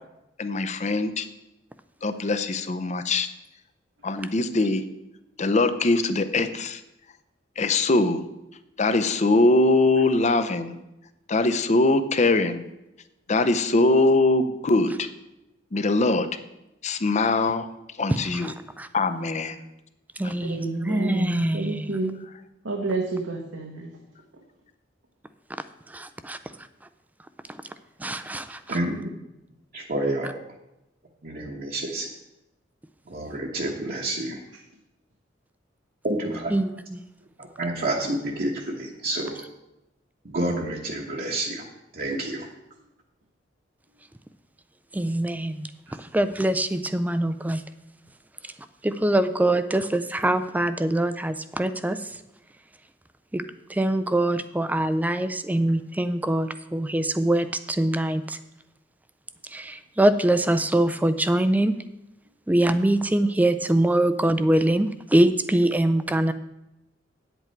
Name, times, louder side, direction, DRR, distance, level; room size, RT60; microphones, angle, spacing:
voice 1, 0.4-1.3 2.0-3.3 4.0-4.8 5.4-6.8 7.6-8.2 8.8-10.8 11.3-12.7 13.3-15.1 15.7-16.3 16.8-17.7 18.0-18.5 18.9-19.6 20.2-20.3, left 2 dB, 40° left, 11 dB, 0.6 m, -22 dB
voice 2, 18.4-18.9 20.2-21.9 25.9-26.4 28.0-28.6 36.5-37.0 44.9-45.7 46.1-47.6 48.8-52.0 53.3-53.4 53.7-58.4 59.5-61.8 62.5-66.3, right 1 dB, 10° right, 12 dB, 0.4 m, -23 dB
voice 3, 20.4-22.1 22.6-23.9, right 2 dB, 85° right, 0 dB, 1.1 m, -29 dB
voice 4, 28.7-29.1 29.7-30.3 31.2-32.1 33.1-34.4 36.0-36.5 37.4-39.4 40.2-41.6 41.9-42.5, right 1 dB, 50° right, -2 dB, 1.1 m, -29 dB
9.0 x 8.1 x 4.6 m, 0.92 s
head